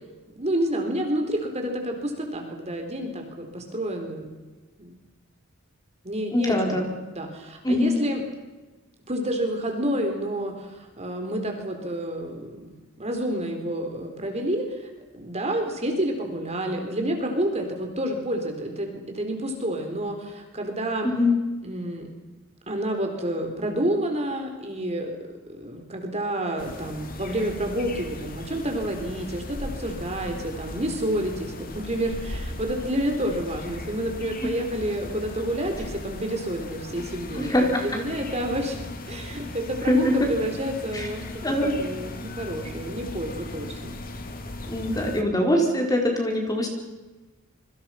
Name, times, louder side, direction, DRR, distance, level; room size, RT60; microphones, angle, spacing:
voice 1, 0.4-4.3 4.8-4.9 6.0-6.8 7.1-8.2 9.1-12.7 13.0-21.1 21.6-22.1 22.7-25.1 25.5-41.2 41.8-43.9, right 1 dB, 30° right, 3 dB, 4.0 m, -29 dB
voice 2, 6.3-6.9 7.6-7.9 21.0-21.3 37.4-37.8 39.9-40.1 40.9-41.1 41.4-41.7 44.7-46.7, left 1 dB, 15° left, 1 dB, 4.4 m, -23 dB
sound 1, 26.6-45.2, left 1 dB, 40° left, 2.6 m, -37 dB
27.0 x 24.5 x 5.9 m, 1.2 s
head